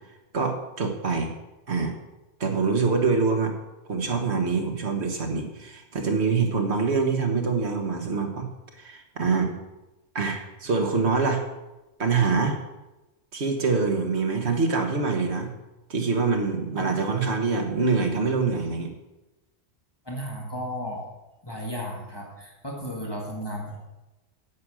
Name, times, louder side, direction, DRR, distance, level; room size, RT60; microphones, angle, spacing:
voice 1, 0.3-1.3 1.7-1.9 2.4-3.5 3.9-8.5 8.8-9.5 10.1-11.4 12.0-12.6 13.3-15.5 15.9-18.9, right 4 dB, 85° right, 4 dB, 1.7 m, -25 dB
voice 2, 20.0-21.1 21.4-23.8, equal, 20° left, -2 dB, 2.1 m, -34 dB
9.5 x 7.9 x 6.3 m, 1.0 s
omnidirectional pair, 1.1 m